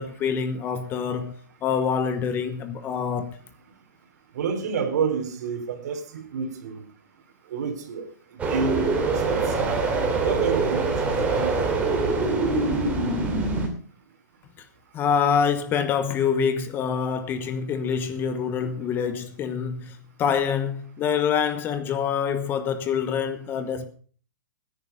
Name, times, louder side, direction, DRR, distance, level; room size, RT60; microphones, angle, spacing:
voice 1, 0.0-1.4 1.6-3.4 14.9-23.9, left 7 dB, 20° left, 1.1 m, -26 dB
voice 2, 4.4-6.8 7.5-8.0 8.5-9.7 10.2-11.5, right 6 dB, 60° right, 3.3 m, -29 dB
sound 1, 8.4-13.7, right 3 dB, 15° right, 2.9 m, -24 dB
15.0 x 9.9 x 5.0 m
hypercardioid pair, 150°, 10 cm